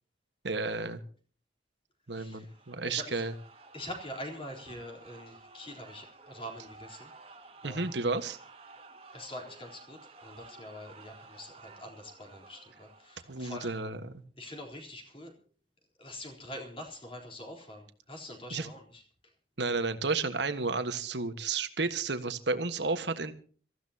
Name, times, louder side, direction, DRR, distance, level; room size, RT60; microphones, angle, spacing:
voice 1, 0.4-1.0 2.1-3.3 7.6-8.4 13.3-14.2 18.5-18.7 19.6-23.3, right 3 dB, 75° right, 9 dB, 1.5 m, -32 dB
voice 2, 2.1-3.3 3.7-7.1 7.6-7.9 9.1-13.7 14.4-15.3 16.0-19.3, left 1 dB, 30° left, 2 dB, 3.8 m, -45 dB
sound 1, 2.4-13.4, right 3 dB, 30° right, 2.2 m, -53 dB
26.5 x 14.5 x 2.9 m, 0.42 s
head